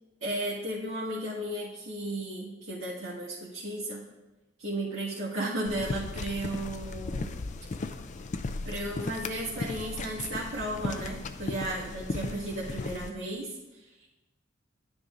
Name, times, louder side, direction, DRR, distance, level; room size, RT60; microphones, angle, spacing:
voice 1, 0.2-4.1 4.6-7.3 8.7-14.1, right 1 dB, 70° right, -9 dB, 1.9 m, -34 dB
sound 1, 5.7-13.1, left 3 dB, 40° left, 0.4 m, -36 dB
11.5 x 9.6 x 2.6 m, 1.1 s
head